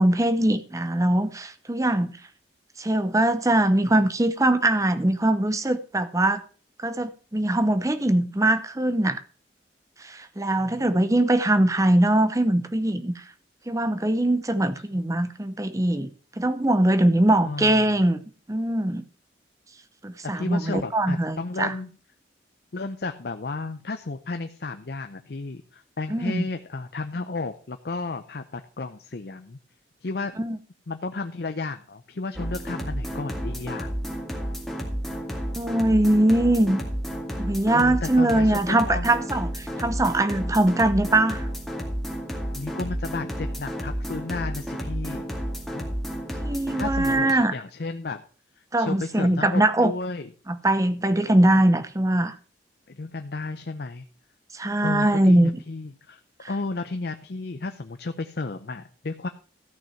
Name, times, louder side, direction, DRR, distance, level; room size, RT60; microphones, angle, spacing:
voice 1, 0.0-2.1 2.8-6.4 6.8-9.2 10.0-13.1 13.7-16.1 16.4-18.2 18.5-19.0 20.0-21.7 26.1-26.4 30.4-30.6 35.6-36.8 37.4-41.4 46.4-47.5 48.7-49.9 50.5-52.3 54.5-55.5 56.4-56.5, right 1 dB, 20° right, 0.7 m, -22 dB
voice 2, 10.6-11.2 14.9-15.0 17.4-17.8 20.3-21.9 22.7-29.6 30.0-30.3 30.9-33.9 37.7-39.1 42.5-45.2 45.7-46.0 46.8-48.2 48.6-50.3 52.9-54.1 54.8-56.2 56.5-59.3, left 3 dB, 60° left, 0.7 m, -33 dB
sound 1, 32.4-47.3, equal, ahead, 2.2 m, -31 dB
14.0 x 6.1 x 5.7 m
head